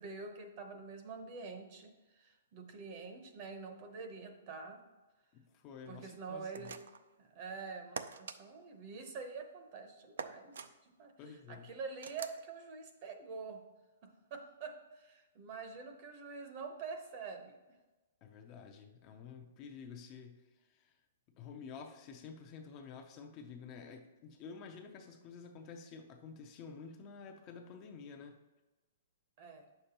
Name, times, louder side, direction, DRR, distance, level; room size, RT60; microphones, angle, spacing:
voice 1, 0.0-4.8 5.9-6.7 7.2-13.6 14.0-17.5 29.4-29.6, right 4 dB, 30° right, 6 dB, 0.8 m, -46 dB
voice 2, 5.3-6.7 11.2-11.7 18.2-21.0 21.4-28.4, left 5 dB, 25° left, 5 dB, 0.5 m, -50 dB
sound 1, 6.5-7.1 8.0-8.4 10.2-10.7 12.0-12.4, right 6 dB, 75° right, 0.5 m, -43 dB
9.0 x 6.7 x 2.9 m, 1.2 s
hypercardioid pair, 170°, 0 cm